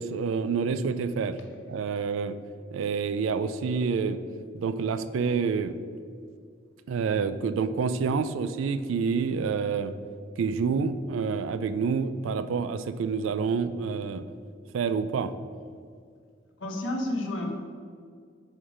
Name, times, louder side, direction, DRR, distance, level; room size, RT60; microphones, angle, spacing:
voice 1, 0.0-1.4 1.7-2.3 2.7-4.2 4.5-5.8 6.9-9.9 10.4-14.3 14.7-15.3, right 5 dB, 85° right, 12 dB, 0.3 m, -28 dB
voice 2, 16.6-17.5, left 1 dB, 75° left, 1 dB, 1.0 m, -30 dB
4.9 x 4.4 x 5.0 m, 2.2 s
head